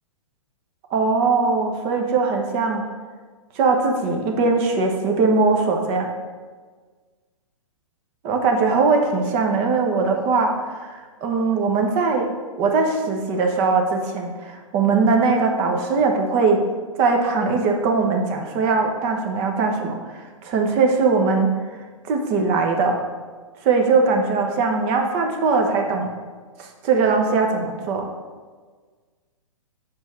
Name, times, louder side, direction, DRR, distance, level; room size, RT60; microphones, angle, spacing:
voice 1, 0.9-2.8 3.5-6.1 8.2-12.3 12.6-16.6 17.0-21.5 22.1-23.0 23.6-26.1 26.6-28.1, right 4 dB, 35° right, 3 dB, 1.0 m, -20 dB
5.6 x 4.5 x 6.4 m, 1.5 s
figure-of-eight pair, 120°, 17 cm